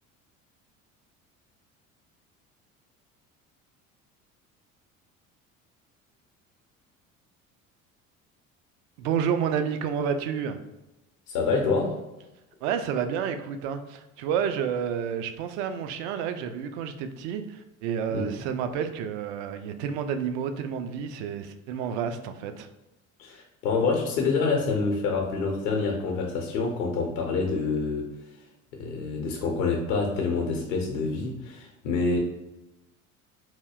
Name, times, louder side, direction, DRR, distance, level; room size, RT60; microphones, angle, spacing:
voice 1, 9.0-10.6 12.6-22.7, right 7 dB, 55° right, 9 dB, 0.4 m, -30 dB
voice 2, 11.3-12.0 18.1-18.2 23.2-28.1 28.8-32.2, left 4 dB, 65° left, 0 dB, 0.7 m, -27 dB
3.4 x 2.6 x 2.3 m, 1.0 s
figure-of-eight pair, 60°, 41 cm